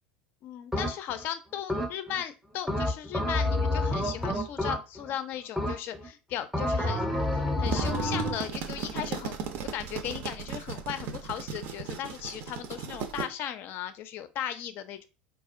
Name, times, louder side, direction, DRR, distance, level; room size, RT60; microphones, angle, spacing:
voice 1, 0.4-7.0 7.6-9.4 9.7-15.1, left 10 dB, 45° left, 11 dB, 0.4 m, -37 dB
No Glue-Included, 0.7-1.2 1.7-2.2 2.7-5.1 5.6-6.1 6.5-8.5, left 1 dB, ahead, 0.6 m, -29 dB
sound 1, 7.4-13.3, right 6 dB, 50° right, 0.5 m, -36 dB
4.1 x 2.4 x 2.4 m, 0.30 s
figure-of-eight pair, 75°, 5 cm